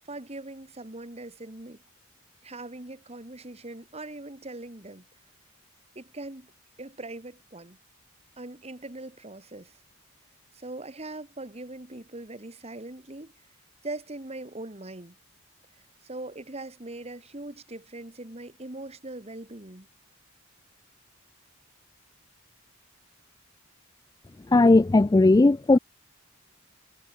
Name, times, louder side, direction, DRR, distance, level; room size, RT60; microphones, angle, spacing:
voice 1, 0.1-1.8 2.4-5.1 6.0-6.5 6.8-7.8 8.4-9.8 10.5-13.3 13.8-15.2 16.0-19.9, right 2 dB, 30° right, 1.9 m, -41 dB
voice 2, 24.5-25.8, left 2 dB, 20° left, 0.3 m, -17 dB
head